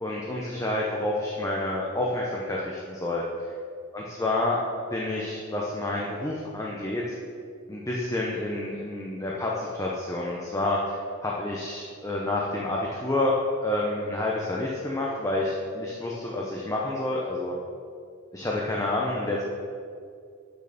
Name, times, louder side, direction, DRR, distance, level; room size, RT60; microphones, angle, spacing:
voice 1, 0.0-3.2 3.9-4.6 4.9-7.2 7.7-13.3 13.6-17.5 18.3-19.4, left 2 dB, 15° left, -4 dB, 0.7 m, -29 dB
6.9 x 6.4 x 6.6 m, 2.3 s
head